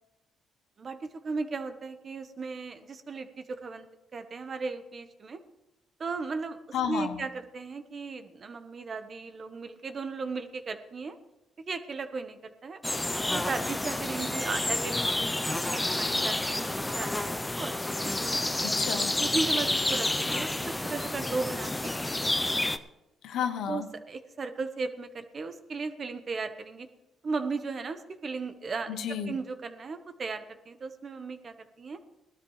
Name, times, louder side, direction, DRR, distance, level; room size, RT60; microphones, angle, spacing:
voice 1, 0.8-3.9 4.1-5.4 6.0-6.6 6.9-11.2 11.7-12.8 13.3-17.8 18.0-18.7 19.2-22.0 23.7-26.9 27.2-29.0 29.3-32.0, right 4 dB, 45° right, 9 dB, 1.2 m, -36 dB
voice 2, 6.7-7.3 18.6-19.1 23.2-23.9 28.9-29.4, left 8 dB, 80° left, 9 dB, 1.0 m, -32 dB
sound 1, 12.8-22.8, left 1 dB, 10° left, 0.6 m, -29 dB
18.5 x 12.5 x 3.3 m, 0.98 s
cardioid pair, 90°, 0 cm